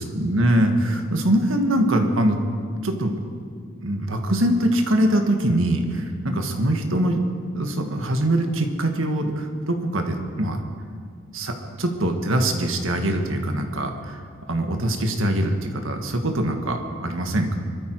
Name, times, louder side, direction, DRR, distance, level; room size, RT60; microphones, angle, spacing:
voice 1, 0.0-2.4 2.8-3.1 3.7-7.2 7.5-10.6 11.3-14.2 14.5-17.6, right 1 dB, 70° right, 4 dB, 1.7 m, -23 dB
23.5 x 13.0 x 4.7 m, 2.1 s
head